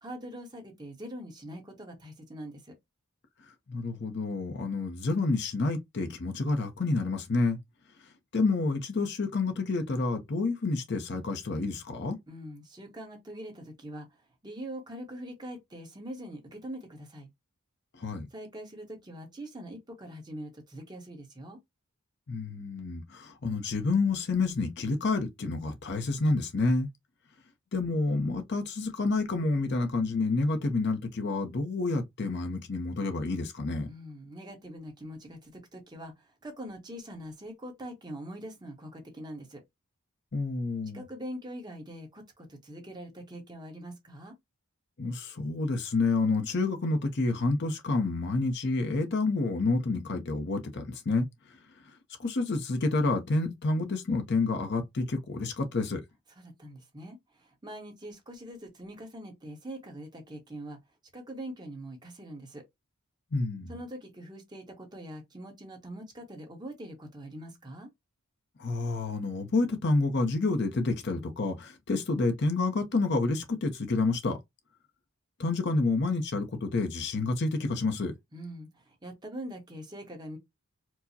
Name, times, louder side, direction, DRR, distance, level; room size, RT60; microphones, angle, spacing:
voice 1, 0.0-2.8 12.3-14.1 14.4-17.3 18.3-21.6 33.9-39.6 40.9-44.3 56.4-60.8 61.1-62.6 63.7-67.9 78.3-80.4, right 1 dB, 20° right, 1.0 m, -43 dB
voice 2, 3.7-7.6 8.3-12.2 18.0-18.3 22.3-26.9 27.7-33.9 40.3-41.0 45.0-51.3 52.2-56.0 63.3-63.7 68.6-74.4 75.4-78.1, left 3 dB, 50° left, 0.6 m, -29 dB
4.5 x 2.1 x 2.7 m
head